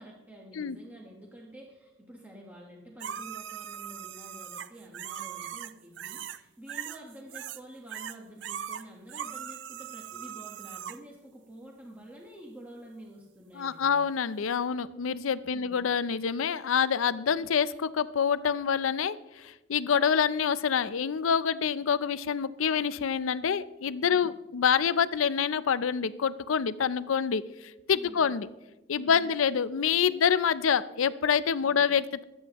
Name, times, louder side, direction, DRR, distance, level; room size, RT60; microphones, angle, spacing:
voice 1, 0.0-14.0 15.5-15.9 24.1-24.4 27.9-28.3 29.0-29.3 31.6-31.9, right 1 dB, 10° right, -2 dB, 1.2 m, -48 dB
sound 1, 3.0-6.4 6.7-7.6 7.9-11.0 14.5-14.6, right 9 dB, 60° right, 0.4 m, -40 dB
voice 2, 13.5-27.4 27.9-28.5 28.9-32.2, left 7 dB, 85° left, 16 dB, 0.5 m, -26 dB
23.5 x 8.8 x 3.0 m, 1.0 s
head